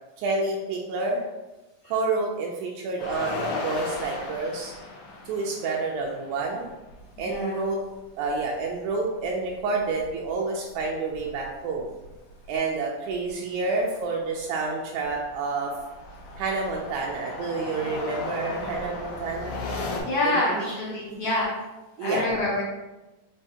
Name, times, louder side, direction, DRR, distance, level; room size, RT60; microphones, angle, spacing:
voice 1, 0.2-1.2 1.9-4.7 5.3-6.7 7.2-7.8 8.2-11.9 12.5-15.7 16.4-19.7 20.3-20.7 21.1-21.2 22.0-22.3, right 3 dB, 80° right, -1 dB, 1.8 m, -29 dB
sound 1, 3.0-7.4 7.7-7.8 8.1-10.4 10.7-12.6 13.1-13.3 13.8-20.0, left 3 dB, 75° left, 1.9 m, -37 dB
voice 2, 7.2-7.7 20.0-21.5 22.0-22.6, left 2 dB, 60° left, -7 dB, 1.5 m, -27 dB
5.3 x 3.2 x 2.8 m, 1.1 s
omnidirectional pair, 3.8 m